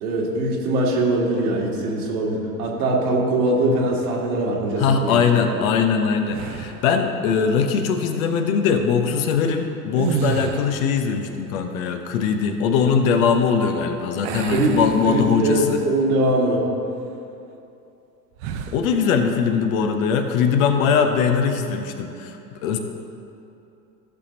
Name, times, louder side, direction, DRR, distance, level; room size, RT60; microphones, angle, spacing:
voice 1, 0.0-5.2 5.5-5.6 14.5-14.7 15.1-16.6, right 1 dB, 60° right, -2 dB, 2.0 m, -22 dB
voice 2, 4.8-15.8 18.7-22.8, left 6 dB, 55° left, 5 dB, 1.0 m, -21 dB
sound 1, 6.3-7.0 9.9-11.0 14.2-15.7 16.1-16.3 18.4-18.9, right 7 dB, 45° right, 0.8 m, -29 dB
15.5 x 6.7 x 2.8 m, 2.8 s
figure-of-eight pair, 80°, 49 cm